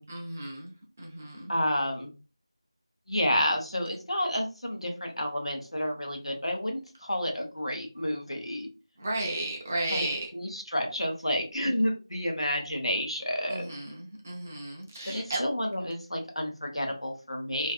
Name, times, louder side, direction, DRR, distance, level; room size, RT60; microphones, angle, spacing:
voice 1, 0.1-1.5 9.0-10.3 13.5-15.4, right 2 dB, 20° right, -1 dB, 0.4 m, -34 dB
voice 2, 1.5-2.1 3.1-8.7 9.9-13.7 15.0-17.7, equal, 90° left, 2 dB, 0.8 m, -30 dB
2.5 x 2.5 x 2.3 m, 0.33 s
figure-of-eight pair, 170°, 3 cm